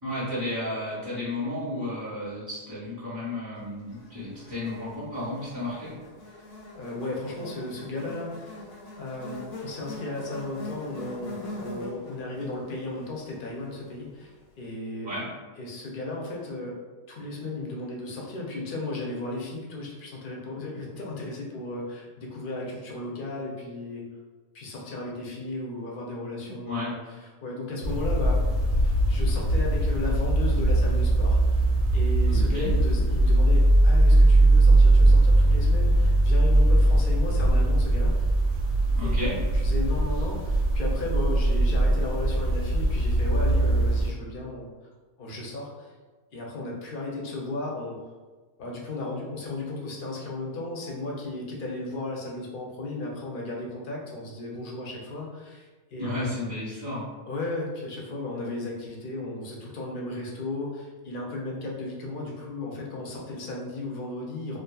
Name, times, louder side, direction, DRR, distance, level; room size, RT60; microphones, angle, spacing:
voice 1, 0.0-5.9 15.0-15.2 26.4-26.9 32.3-32.7 38.9-39.4 56.0-57.1, left 1 dB, 20° right, -10 dB, 0.6 m, -33 dB
Buzz, 3.9-14.3, left 2 dB, 90° left, 1.0 m, -43 dB
voice 2, 6.7-8.6 9.0-15.1 15.6-16.8 17.1-24.1 24.5-28.4 28.8-31.4 31.9-38.1 39.0-44.7 45.2-45.9 46.3-48.0 48.6-56.3 57.3-64.6, left 2 dB, 60° left, -2 dB, 0.6 m, -35 dB
sound 1, 27.8-44.1, right 1 dB, 70° right, 0.8 m, -20 dB
2.6 x 2.3 x 2.2 m, 1.3 s
omnidirectional pair, 1.2 m